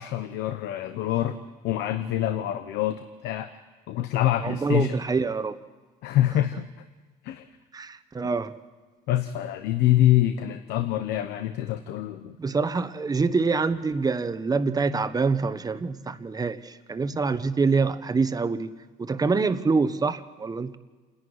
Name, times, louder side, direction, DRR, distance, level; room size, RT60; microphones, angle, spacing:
voice 1, 0.0-1.4 1.6-3.5 3.9-4.9 6.0-6.7 7.2-7.5 9.1-12.4, left 13 dB, 85° left, 9 dB, 1.0 m, -25 dB
voice 2, 4.4-5.6 7.7-8.5 12.4-18.7 19.0-20.8, right 4 dB, 20° right, 11 dB, 1.1 m, -25 dB
28.0 x 11.0 x 9.6 m, 1.3 s
cardioid pair, 110°, 17 cm